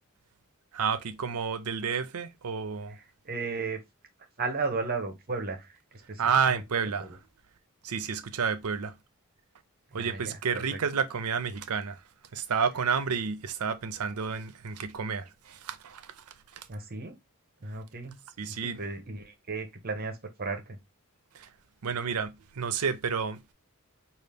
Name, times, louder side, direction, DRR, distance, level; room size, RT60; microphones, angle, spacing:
voice 1, 0.7-3.0 6.2-7.1 7.8-8.9 9.9-12.0 12.3-16.1 16.6-16.7 18.4-18.8 21.3-21.5 21.8-23.4, right 6 dB, 80° right, 0.6 m, -30 dB
voice 2, 3.0-3.8 4.4-6.6 7.0-7.2 9.9-10.8 16.7-17.1 17.6-20.8, right 4 dB, 45° right, 0.8 m, -35 dB
5.0 x 2.5 x 3.4 m
head